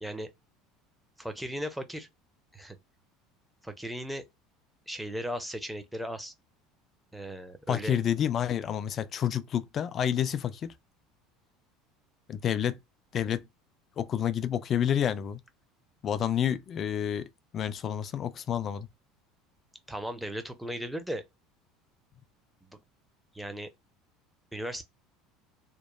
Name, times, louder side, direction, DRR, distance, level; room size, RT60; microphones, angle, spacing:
voice 1, 0.0-0.3 1.2-2.1 2.5-2.8 3.6-4.2 4.9-6.3 7.1-8.0 19.9-21.2 22.6-22.8 23.3-23.7 24.5-24.8, equal, 5° right, 0.6 m, -36 dB
voice 2, 7.7-10.7 12.3-12.8 13.1-13.4 14.0-15.4 16.0-17.3 17.5-18.9, left 9 dB, 40° left, 0.3 m, -29 dB
3.0 x 2.2 x 2.3 m
figure-of-eight pair, 65°, 0 cm